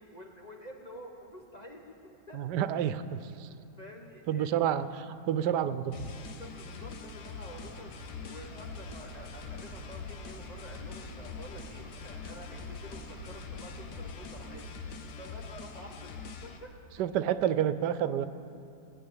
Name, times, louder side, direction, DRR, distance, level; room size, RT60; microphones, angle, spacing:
voice 1, 0.0-2.4 3.8-4.7 6.4-7.9 8.3-16.1 16.4-16.7 17.0-17.2, left 1 dB, 30° left, 0 dB, 1.0 m, -49 dB
voice 2, 2.3-3.5 4.3-6.1 17.0-18.3, right 10 dB, 90° right, 13 dB, 1.2 m, -29 dB
sound 1, 5.9-16.6, left 5 dB, 85° left, 1.5 m, -43 dB
sound 2, 7.5-14.7, right 3 dB, 25° right, 1.5 m, -49 dB
20.5 x 6.8 x 8.9 m, 2.7 s
omnidirectional pair, 1.8 m